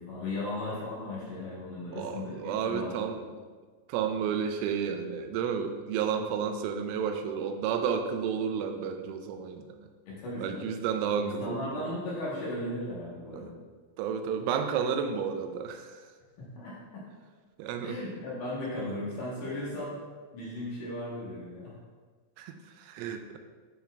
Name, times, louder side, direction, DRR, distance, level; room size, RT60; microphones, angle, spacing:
voice 1, 0.0-3.1 10.1-10.7 11.0-13.6 16.4-17.1 17.8-20.0 20.3-21.7, left 1 dB, 80° left, -6 dB, 1.9 m, -36 dB
voice 2, 1.9-3.2 3.9-9.7 10.4-11.9 13.3-13.5 14.0-15.9 17.6-18.0 22.4-23.4, right 7 dB, 85° right, 7 dB, 3.1 m, -31 dB
11.5 x 4.3 x 2.3 m, 1.4 s
omnidirectional pair, 5.6 m